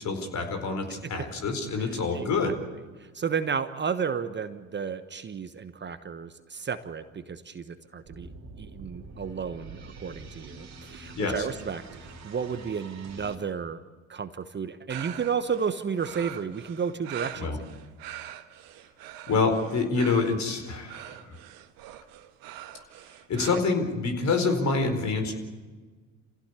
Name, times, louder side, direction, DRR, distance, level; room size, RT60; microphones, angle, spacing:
voice 1, 0.0-2.5 11.2-11.5 17.3-17.6 19.3-21.4 23.3-25.3, left 4 dB, 45° left, 6 dB, 4.5 m, -27 dB
voice 2, 2.1-2.5 3.0-8.3 8.6-13.8 14.1-17.5, right 6 dB, 30° right, 11 dB, 1.2 m, -32 dB
sound 1, 8.1-13.3, right 3 dB, 45° right, 2.9 m, -45 dB
sound 2, 14.9-23.6, right 13 dB, 60° right, 1.5 m, -43 dB
28.0 x 16.0 x 8.3 m, 1.4 s
hypercardioid pair, 60°, 38 cm